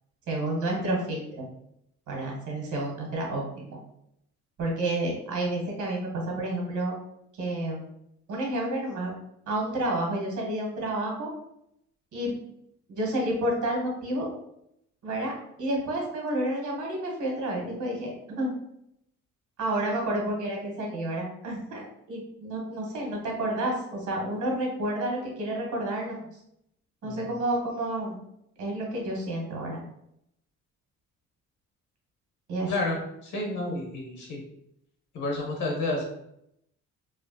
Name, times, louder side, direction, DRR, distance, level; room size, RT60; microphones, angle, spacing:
voice 1, 0.3-1.2 2.1-3.4 3.7-3.8 4.6-6.9 7.4-7.8 8.3-9.1 9.5-11.3 12.1-12.4 12.9-14.3 15.0-15.3 15.6-18.5 19.6-21.8 22.1-26.2 27.0-28.2 28.6-29.8 32.5-32.7, right 1 dB, 75° right, -1 dB, 1.3 m, -30 dB
voice 2, 32.7-34.4 35.1-36.1, left 2 dB, 75° left, 0 dB, 1.3 m, -30 dB
3.1 x 2.6 x 2.7 m, 0.77 s
cardioid pair, 90°, 30 cm